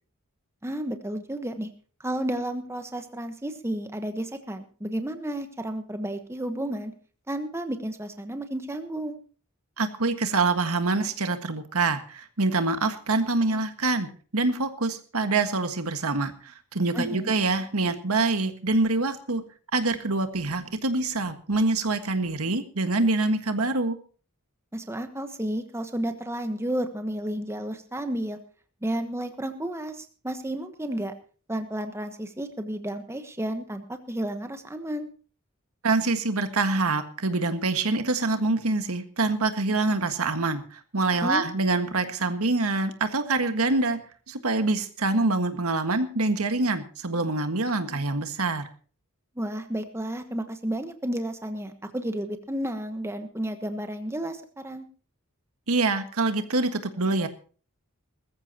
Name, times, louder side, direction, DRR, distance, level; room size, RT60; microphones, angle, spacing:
voice 1, 0.6-1.7 2.0-6.9 7.3-9.2 16.9-17.3 24.7-28.4 28.8-31.1 31.5-35.1 41.2-41.5 49.4-54.9, right 1 dB, 10° right, 8 dB, 1.2 m, -32 dB
voice 2, 9.8-19.4 19.7-24.0 35.8-44.0 44.3-48.6 55.7-57.3, right 3 dB, 85° right, 8 dB, 1.6 m, -25 dB
20.5 x 14.0 x 2.9 m, 0.40 s
head